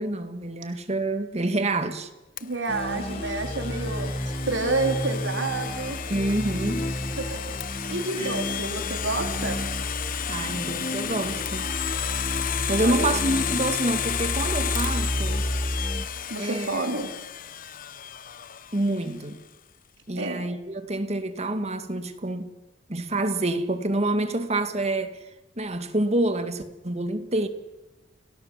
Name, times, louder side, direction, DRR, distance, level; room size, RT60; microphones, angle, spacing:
voice 1, 0.0-2.1 6.1-6.9 8.2-8.5 10.3-11.7 12.7-15.5 16.4-16.8 18.7-19.4 20.1-22.5 22.9-25.2 25.6-27.5, right 2 dB, 35° right, 2.0 m, -27 dB
Domestic sounds home sounds, 2.4-19.1, left 9 dB, 50° left, 0.8 m, -33 dB
voice 2, 2.4-4.1 4.5-6.0 7.9-9.6 12.8-13.0 16.3-17.1 20.1-20.5, right 3 dB, 90° right, 3.2 m, -29 dB
sound 1, 2.7-16.1, equal, 30° left, 1.3 m, -31 dB
30.0 x 18.0 x 7.5 m
head